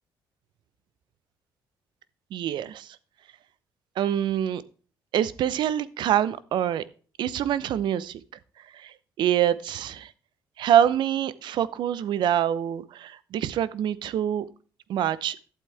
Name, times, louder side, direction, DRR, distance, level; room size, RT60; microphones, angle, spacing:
voice 1, 2.3-3.0 4.0-4.6 5.1-6.8 7.2-8.2 8.7-10.1 10.6-14.5 14.9-15.4, right 10 dB, 70° right, 18 dB, 0.8 m, -25 dB
11.5 x 8.2 x 3.4 m, 0.39 s
supercardioid pair, 70°, 8 cm